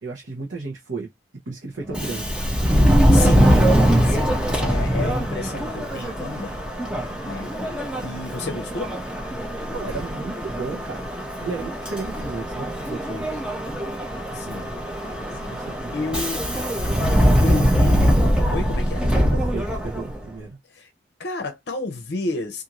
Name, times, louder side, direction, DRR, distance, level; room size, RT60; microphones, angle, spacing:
voice 1, 0.0-1.1 1.5-2.4 9.7-11.1 11.4-13.4 15.3-16.2 17.1-17.6 19.3-20.6, right 4 dB, 80° right, 0.8 m, -34 dB
Subway metro underground, 1.9-20.2, equal, 5° right, 0.6 m, -22 dB
voice 2, 3.1-3.6 4.0-6.6 7.2-7.5 8.0-8.9 14.3-14.7 15.4-15.5 15.9-16.5 17.4-19.0 20.7-20.9 21.2-22.6, left 3 dB, 55° left, 0.6 m, -31 dB
2.5 x 2.5 x 2.8 m
head